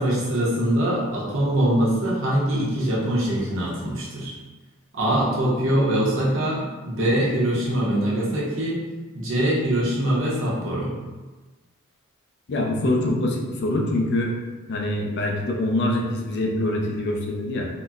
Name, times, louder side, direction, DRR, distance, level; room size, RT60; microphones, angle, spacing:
voice 1, 0.0-4.4 4.9-8.8 9.1-10.9, right 1 dB, 60° right, -5 dB, 0.8 m, -23 dB
voice 2, 12.5-14.3 14.7-17.7, left 1 dB, 50° left, 0 dB, 0.4 m, -24 dB
3.8 x 2.1 x 2.3 m, 1.2 s
head